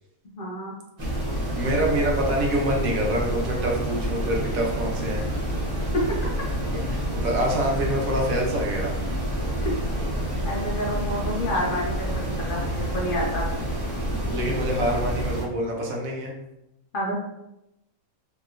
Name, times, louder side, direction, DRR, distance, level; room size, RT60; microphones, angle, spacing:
voice 1, 0.4-0.8 5.9-6.0 10.4-13.5 16.9-17.1, equal, 60° left, -3 dB, 0.6 m, -29 dB
Brown Noise, 1.0-15.4, right 1 dB, 30° right, 0.9 m, -28 dB
voice 2, 1.5-5.3 6.7-9.0 14.3-16.3, right 1 dB, 70° right, -1 dB, 1.0 m, -26 dB
2.9 x 2.7 x 2.4 m, 0.88 s
omnidirectional pair, 1.5 m